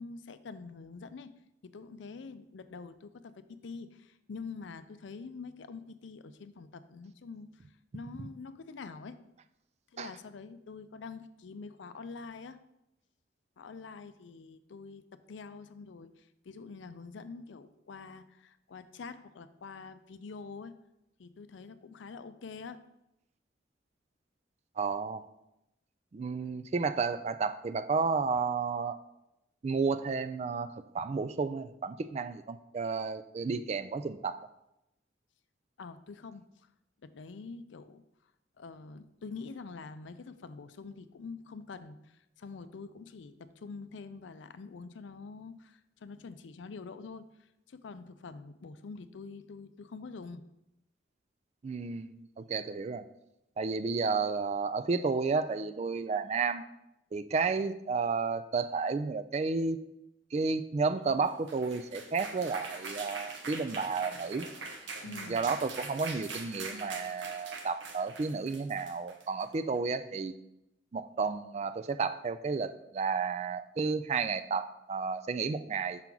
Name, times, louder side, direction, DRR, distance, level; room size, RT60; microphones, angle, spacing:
voice 1, 0.0-1.3 1.6-7.6 7.9-9.2 9.9-12.6 13.6-20.7 21.2-22.8 35.8-36.4 37.0-38.0 38.6-50.4 65.0-65.5, left 4 dB, 75° left, 12 dB, 0.4 m, -46 dB
voice 2, 24.8-25.2 26.1-29.0 29.6-34.4 51.6-53.0 53.6-56.6 57.1-59.8 60.3-64.5 65.1-70.3 70.9-76.0, right 4 dB, 35° right, 11 dB, 0.3 m, -32 dB
sound 1, 61.3-69.5, right 3 dB, 75° right, 0.9 m, -43 dB
5.7 x 3.8 x 6.0 m, 0.87 s
head